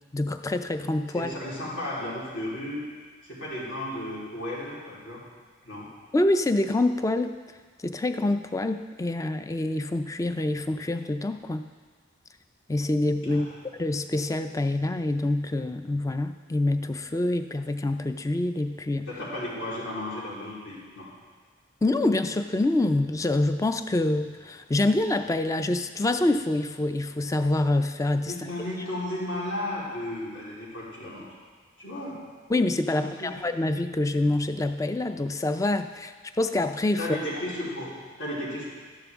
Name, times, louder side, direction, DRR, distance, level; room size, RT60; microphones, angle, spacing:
voice 1, 0.1-1.4 6.1-7.3 7.8-11.7 12.7-13.5 13.8-19.1 21.8-28.5 32.5-37.0, left 2 dB, 15° left, 9 dB, 0.3 m, -26 dB
voice 2, 1.1-2.8 3.2-5.2 5.6-5.9 13.2-13.6 19.1-21.1 28.3-31.3 31.8-32.2 32.9-33.3 37.0-38.7, left 1 dB, 75° left, -7 dB, 3.7 m, -34 dB
13.0 x 10.5 x 3.6 m, 1.5 s
head